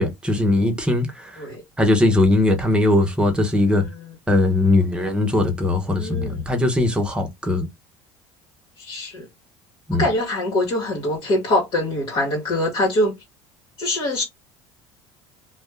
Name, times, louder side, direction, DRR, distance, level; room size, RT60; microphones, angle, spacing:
voice 1, 0.0-1.4 1.8-3.8 4.3-7.7 9.9-10.0, left 2 dB, 10° right, 0.9 m, -20 dB
voice 2, 6.0-6.4 8.8-9.3 10.0-13.1 13.8-14.2, left 1 dB, 50° left, 1.3 m, -23 dB
2.5 x 2.2 x 3.4 m
supercardioid pair, 110°, 11 cm